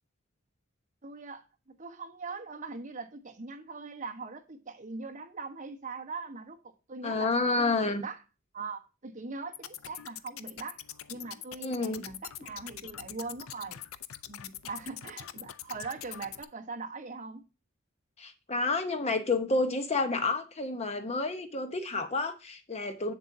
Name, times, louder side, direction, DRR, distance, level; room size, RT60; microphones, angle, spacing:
voice 1, 1.0-8.2 8.5-10.8 11.1-13.8 14.3-17.4, right 4 dB, 35° right, 1.1 m, -41 dB
voice 2, 7.0-8.0 11.6-12.0 18.2-23.1, left 3 dB, 30° left, 0.9 m, -29 dB
sound 1, 9.5-16.4, left 11 dB, 80° left, 0.5 m, -44 dB
7.9 x 7.3 x 2.7 m
head